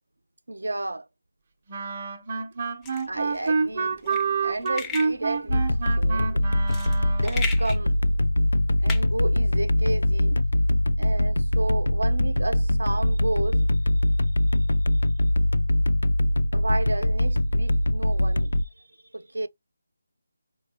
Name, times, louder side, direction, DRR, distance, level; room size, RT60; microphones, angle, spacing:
voice 1, 0.5-1.1 2.3-2.5 3.1-6.7 7.2-8.0 8.8-10.5 11.0-13.9 14.5-15.0 16.5-18.9 19.1-19.5, right 2 dB, 80° right, 0.6 m, -32 dB
Wind instrument woodwind instrument, 1.7-7.4, right 5 dB, 35° right, 0.6 m, -28 dB
sound 1, 2.8-10.0, left 4 dB, 10° left, 0.4 m, -38 dB
sound 2, 5.5-18.6, left 1 dB, 80° left, 0.3 m, -22 dB
4.3 x 2.2 x 3.4 m
figure-of-eight pair, 165°, 0 cm